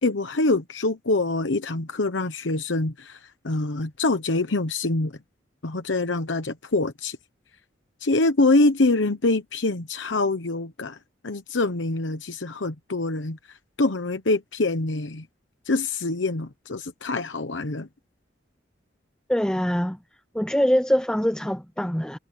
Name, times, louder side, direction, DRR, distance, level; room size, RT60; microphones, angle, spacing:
voice 1, 0.0-5.1 5.6-7.2 8.0-11.0 11.2-15.3 15.6-17.9, left 2 dB, 80° left, 1.0 m, -25 dB
voice 2, 19.3-20.0 20.3-22.2, equal, 5° left, 0.8 m, -23 dB
head